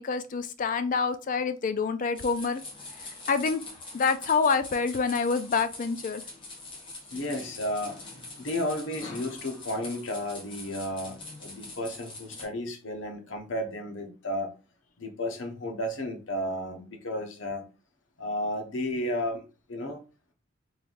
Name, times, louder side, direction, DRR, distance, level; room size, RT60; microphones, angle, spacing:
voice 1, 0.0-2.6 3.0-3.6 3.9-6.2, left 5 dB, 40° left, 0.4 m, -27 dB
sound 1, 2.1-12.4, left 2 dB, 25° left, 1.1 m, -43 dB
voice 2, 7.1-8.0 8.4-14.5 15.0-17.6 18.2-19.4 19.7-20.0, left 1 dB, 70° left, 0.8 m, -33 dB
3.2 x 2.5 x 3.8 m
head